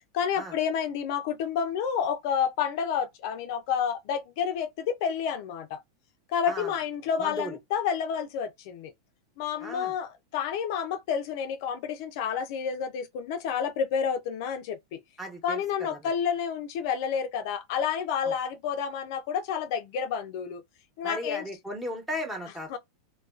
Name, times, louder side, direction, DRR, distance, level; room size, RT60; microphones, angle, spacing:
voice 1, 0.1-5.8 6.3-8.9 9.4-15.0 15.4-20.6 21.0-21.4 22.7-22.8, left 7 dB, 55° left, 0.5 m, -30 dB
voice 2, 7.2-7.6 9.6-9.9 15.2-16.0 18.2-18.3 21.0-22.8, equal, 10° right, 1.1 m, -36 dB
2.3 x 2.2 x 2.4 m
hypercardioid pair, 120°, 2 cm